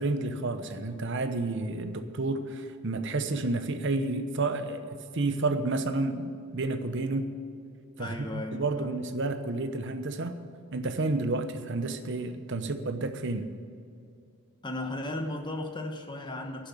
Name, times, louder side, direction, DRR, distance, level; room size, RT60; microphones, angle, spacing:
voice 1, 0.0-4.8 5.1-7.3 8.0-10.4 10.7-13.5, right 2 dB, 55° right, 9 dB, 0.9 m, -30 dB
voice 2, 8.0-8.9 14.6-16.7, left 1 dB, 20° left, 4 dB, 1.1 m, -35 dB
11.5 x 7.3 x 9.8 m, 2.5 s
head